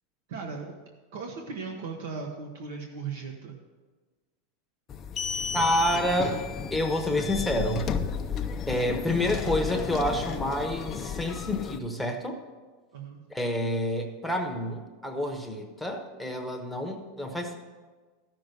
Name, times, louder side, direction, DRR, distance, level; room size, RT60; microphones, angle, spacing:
voice 1, 0.3-0.7 1.1-3.6 12.9-13.2, right 5 dB, 75° right, 2 dB, 1.2 m, -37 dB
sound 1, 4.9-11.8, left 6 dB, 25° left, 0.5 m, -33 dB
voice 2, 5.5-7.9 8.7-12.4 13.3-17.6, equal, ahead, 2 dB, 0.9 m, -28 dB
13.5 x 6.0 x 6.7 m, 1.4 s
supercardioid pair, 160°, 0 cm